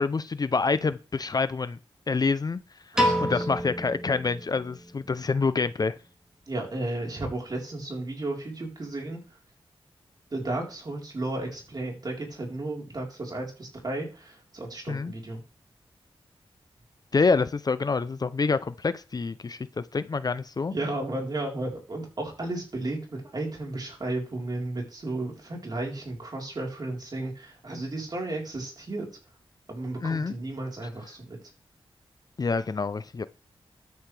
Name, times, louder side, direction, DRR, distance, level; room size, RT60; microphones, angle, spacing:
voice 1, 0.0-1.8 2.1-2.6 3.2-5.9 14.9-15.1 17.1-20.7 30.0-30.3 32.4-33.3, left 4 dB, 40° left, 14 dB, 0.6 m, -27 dB
voice 2, 2.9-3.5 6.5-9.4 10.3-15.4 20.7-29.1 29.7-31.4, right 2 dB, 45° right, 0 dB, 4.1 m, -33 dB
Piano, 3.0-5.2, equal, 5° right, 4.6 m, -28 dB
13.0 x 9.5 x 3.4 m, 0.35 s
wide cardioid pair, 105°, 10 cm